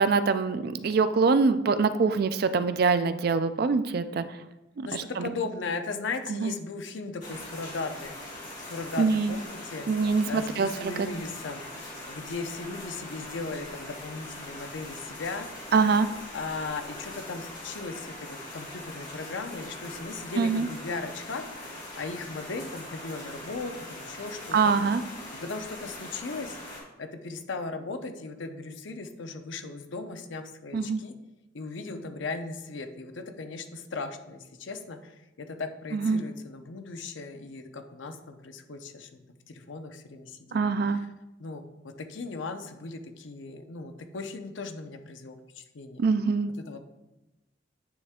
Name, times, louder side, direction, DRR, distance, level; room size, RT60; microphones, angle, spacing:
voice 1, 0.0-4.2 4.8-5.2 6.4-6.5 9.0-9.3 9.9-10.9 15.7-16.1 20.4-20.7 24.5-25.0 30.7-31.0 35.9-36.2 40.5-41.0 46.0-46.5, right 4 dB, 50° right, 12 dB, 0.3 m, -24 dB
voice 2, 4.8-8.2 8.6-9.9 10.3-11.6 12.1-15.5 16.3-24.7 25.3-26.6 27.0-31.1 31.5-41.1 41.4-46.0 46.6-46.8, left 3 dB, 75° left, 7 dB, 0.6 m, -37 dB
sound 1, 7.2-26.8, left 1 dB, 45° left, 2.1 m, -42 dB
9.3 x 3.3 x 3.6 m, 0.97 s
head